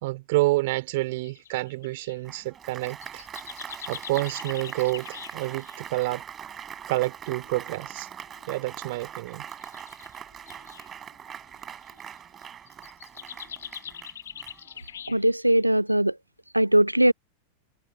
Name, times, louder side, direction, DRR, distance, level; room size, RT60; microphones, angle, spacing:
voice 1, 0.0-3.3 3.9-6.2 6.9-8.1 8.5-9.5, right 20 dB, 50° right, 2.9 m, -28 dB
sound 1, 1.2-2.2 2.7-5.9 7.5-7.6 8.4-8.7 9.5-10.9 11.8-12.0 12.4-15.6, left 9 dB, 65° left, 6.5 m, -43 dB
Applause, 2.2-15.0, right 8 dB, 25° right, 7.9 m, -42 dB
voice 2, 15.1-16.1 16.5-17.1, right 1 dB, 85° right, 0.4 m, -20 dB
figure-of-eight pair, 90°, 0 cm